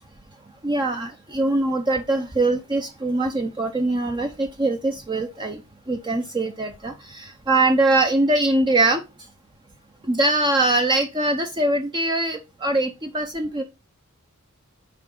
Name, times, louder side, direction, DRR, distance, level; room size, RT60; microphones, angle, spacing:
voice 1, 0.6-5.6 5.9-9.0 10.0-13.6, right 2 dB, 20° right, 5 dB, 0.6 m, -22 dB
6.2 x 4.7 x 6.5 m, 0.28 s
head